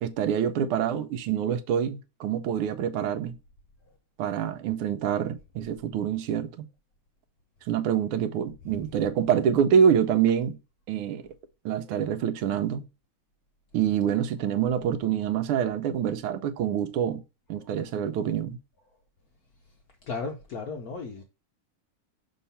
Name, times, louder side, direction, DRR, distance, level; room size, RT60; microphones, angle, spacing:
voice 1, 0.0-3.4 4.2-6.7 7.7-10.6 10.9-11.3 11.6-12.8 13.7-17.2 17.5-18.6, right 8 dB, 80° right, 1.5 m, -26 dB
voice 2, 20.1-21.2, left 4 dB, 65° left, 0.9 m, -35 dB
5.6 x 3.6 x 5.5 m
omnidirectional pair, 2.4 m